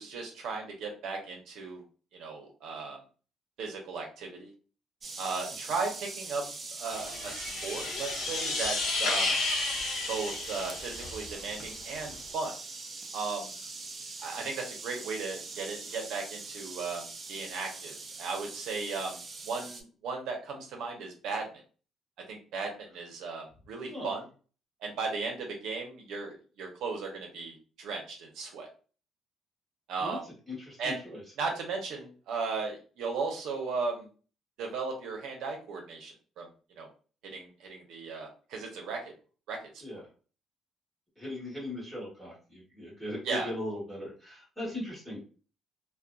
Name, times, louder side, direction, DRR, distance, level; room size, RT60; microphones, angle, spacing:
voice 1, 0.0-1.8 2.1-3.0 3.6-4.5 5.2-6.4 6.8-9.4 10.1-12.5 13.1-13.5 14.2-21.6 22.3-24.2 24.8-28.7 29.9-30.2 30.8-31.0 31.4-34.1 34.6-36.5 36.8-36.9 37.3-39.0 39.5-39.6 39.9-40.0 43.2-43.5, right 4 dB, 75° right, 1 dB, 0.7 m, -36 dB
sound 1, 5.0-19.8, right 3 dB, 25° right, 0.3 m, -43 dB
sound 2, 6.9-11.6, left 3 dB, 70° left, 0.7 m, -32 dB
voice 2, 30.5-31.2 39.8-40.0 41.2-45.2, left 1 dB, 5° left, -6 dB, 1.1 m, -39 dB
2.6 x 2.2 x 2.2 m, 0.38 s
cardioid pair, 175°, 0 cm